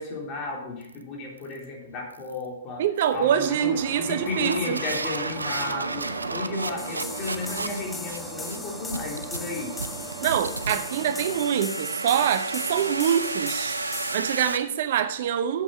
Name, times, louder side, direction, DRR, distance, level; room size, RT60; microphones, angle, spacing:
voice 1, 0.0-2.8 3.1-9.7, left 3 dB, 35° left, -1 dB, 3.4 m, -34 dB
sound 1, 0.8-1.0 1.4-1.6 2.1-2.5 3.0-3.2 3.9-14.6, right 3 dB, 90° right, 0.6 m, -33 dB
voice 2, 2.8-4.8 6.5-6.6 10.2-13.8 14.1-15.6, right 9 dB, 55° right, 11 dB, 0.7 m, -25 dB
sound 2, 3.1-11.5, right 4 dB, 30° right, 2.1 m, -40 dB
sound 3, 6.8-14.1, left 3 dB, 10° left, 0.6 m, -39 dB
8.3 x 7.6 x 4.9 m, 0.81 s
figure-of-eight pair, 115°, 0 cm